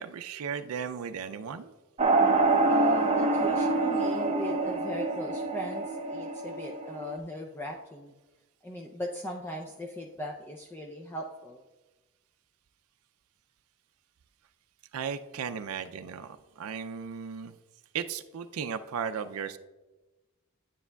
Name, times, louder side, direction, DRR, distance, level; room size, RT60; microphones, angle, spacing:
voice 1, 0.0-1.7 14.9-17.6 17.9-19.6, right 7 dB, 90° right, 9 dB, 0.4 m, -36 dB
sound 1, 2.0-7.2, right 3 dB, 30° right, 0.6 m, -26 dB
voice 2, 2.7-8.1 8.6-11.6, left 1 dB, 10° left, 0 dB, 0.4 m, -39 dB
9.9 x 9.5 x 2.3 m, 1.2 s
head